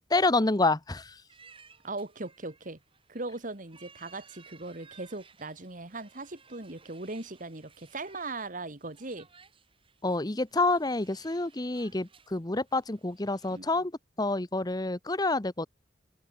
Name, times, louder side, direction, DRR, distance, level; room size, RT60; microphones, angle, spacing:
voice 1, 0.1-1.2 10.0-13.9 14.2-15.7, left 2 dB, 20° left, 1.0 m, -28 dB
sound 1, 1.3-13.6, right 5 dB, 30° right, 7.6 m, -59 dB
voice 2, 1.8-2.8 3.1-9.3 13.5-13.7, right 2 dB, 45° right, 1.9 m, -39 dB
open air
head